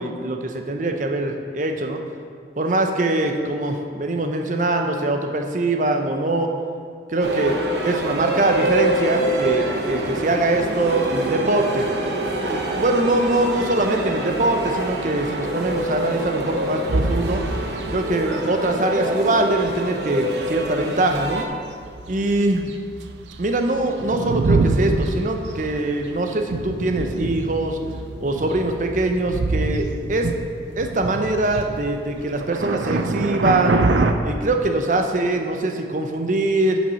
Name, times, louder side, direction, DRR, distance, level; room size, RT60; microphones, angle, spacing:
voice 1, 0.0-2.0 2.6-6.5 7.1-7.6 7.8-11.9 12.5-17.4 17.9-21.4 22.1-22.7 23.4-27.8 28.2-30.3 30.8-33.8 34.2-36.8, right 2 dB, 45° right, 4 dB, 0.7 m, -22 dB
sound 1, 7.2-21.5, right 1 dB, 70° right, 1.0 m, -26 dB
sound 2, 16.9-17.9 18.6-18.7 19.7-19.8 20.6-21.4 21.8-34.1, right 3 dB, 90° right, 0.5 m, -25 dB
8.2 x 6.0 x 5.5 m, 2.3 s
head